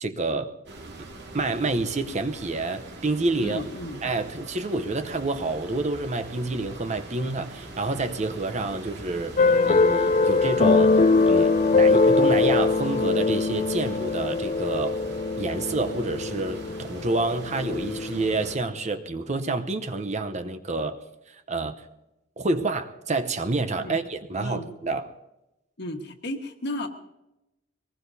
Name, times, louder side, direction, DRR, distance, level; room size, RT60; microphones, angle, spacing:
voice 1, 0.0-0.5 1.0-1.1 1.3-3.6 4.0-15.0 15.4-21.0 21.3-21.8 22.4-25.1, right 2 dB, 35° right, 0.8 m, -28 dB
sound 1, 0.7-18.6, right 2 dB, 60° right, 2.0 m, -42 dB
voice 2, 3.4-4.0 23.8-24.0 24.4-24.7 25.8-26.9, left 1 dB, 60° left, 1.5 m, -34 dB
sound 2, 9.4-18.6, left 3 dB, 40° left, 0.5 m, -22 dB
22.5 x 19.5 x 2.7 m
head